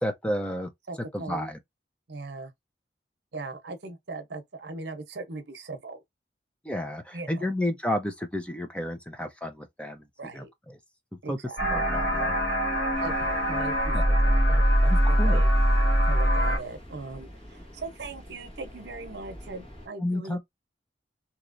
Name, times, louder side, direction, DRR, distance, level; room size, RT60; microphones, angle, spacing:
voice 1, 0.0-0.7 1.1-1.6 6.6-10.0 10.3-10.4 11.3-12.4 13.9-14.0 15.1-15.4 20.0-20.4, left 1 dB, 5° left, 0.6 m, -31 dB
voice 2, 0.9-1.5 2.1-2.5 3.3-6.0 7.1-7.5 10.2-10.5 11.2-11.8 13.0-15.5 16.0-20.4, right 3 dB, 70° right, 0.9 m, -39 dB
sound 1, 11.6-16.6, equal, 60° left, 1.7 m, -22 dB
sound 2, 12.9-19.9, equal, 30° left, 1.4 m, -44 dB
3.1 x 2.9 x 2.6 m
head